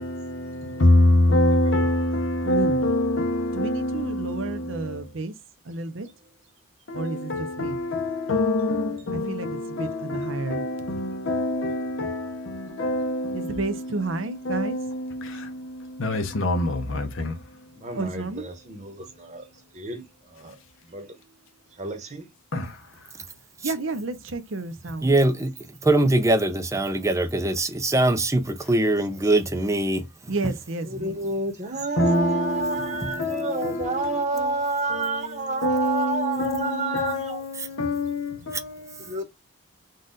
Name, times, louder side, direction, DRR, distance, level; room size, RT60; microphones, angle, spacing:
voice 1, 0.0-5.1 6.9-17.8 22.5-23.1 32.0-34.5 34.9-39.2, left 1 dB, 65° left, 0.8 m, -26 dB
voice 2, 2.4-2.9 3.5-5.4 5.6-6.3 6.9-7.8 9.1-10.7 13.3-14.8 17.9-18.5 23.3-25.1 30.3-31.3, right 3 dB, 65° right, 0.8 m, -32 dB
voice 3, 17.8-19.5 19.7-20.6 20.8-21.2 21.8-22.3 30.9-37.4 39.1-39.2, right 3 dB, 35° right, 1.0 m, -29 dB
voice 4, 25.0-30.3 37.6-37.7, right 2 dB, 15° right, 0.5 m, -22 dB
4.1 x 2.4 x 3.8 m
head